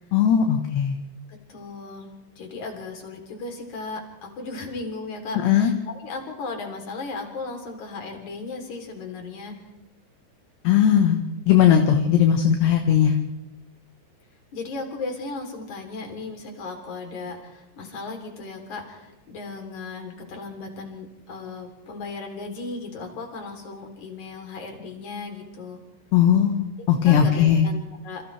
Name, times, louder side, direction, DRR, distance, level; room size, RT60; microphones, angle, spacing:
voice 1, 0.1-1.0 5.4-5.7 10.6-13.2 26.1-27.6, left 9 dB, 70° left, 4 dB, 3.3 m, -18 dB
voice 2, 1.5-2.1 2.4-9.6 14.5-25.8 27.0-28.2, left 3 dB, 45° left, 2 dB, 4.6 m, -36 dB
29.5 x 27.5 x 3.4 m, 1.0 s
omnidirectional pair, 5.3 m